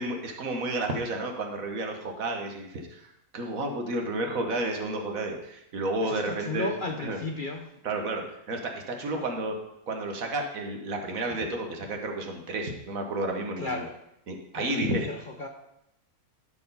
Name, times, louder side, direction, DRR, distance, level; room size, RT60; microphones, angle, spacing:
voice 1, 0.0-6.7 7.0-7.2 7.8-8.2 8.5-9.5 9.9-13.8 14.3-15.1, right 2 dB, 65° right, 3 dB, 1.6 m, -31 dB
voice 2, 6.0-7.7 9.1-9.2 13.6-14.0 14.5-15.5, left 2 dB, 45° left, 3 dB, 0.7 m, -34 dB
12.0 x 4.7 x 5.3 m, 0.80 s
omnidirectional pair, 1.6 m